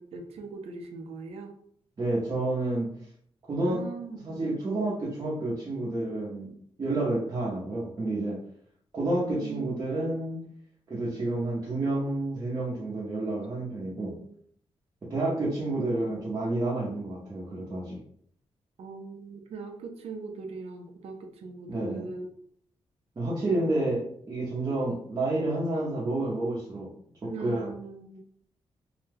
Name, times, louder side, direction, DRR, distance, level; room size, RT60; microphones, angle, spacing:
voice 1, 0.0-1.5 3.6-4.6 9.4-9.7 13.8-14.3 18.8-22.3 23.4-23.7 27.2-28.2, right 4 dB, 75° right, 4 dB, 0.5 m, -41 dB
voice 2, 2.0-2.9 3.5-3.8 4.2-6.5 6.8-8.4 8.9-10.4 10.9-14.2 15.1-18.0 21.7-22.0 23.2-26.9 27.2-27.7, right 2 dB, 30° right, -8 dB, 0.7 m, -29 dB
2.7 x 2.1 x 3.3 m, 0.63 s
wide cardioid pair, 165°, 10 cm